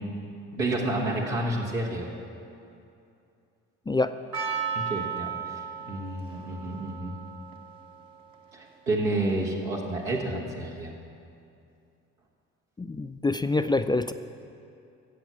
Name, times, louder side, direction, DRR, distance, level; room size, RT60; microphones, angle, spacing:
voice 1, 0.5-2.1 4.7-7.1 8.5-10.9, right 2 dB, 85° right, -3 dB, 1.6 m, -30 dB
Percussion, 4.3-9.6, right 6 dB, 55° right, 1.4 m, -36 dB
voice 2, 12.8-14.1, left 2 dB, 10° left, 9 dB, 0.4 m, -26 dB
15.0 x 7.8 x 7.3 m, 2.6 s
figure-of-eight pair, 40°, 39 cm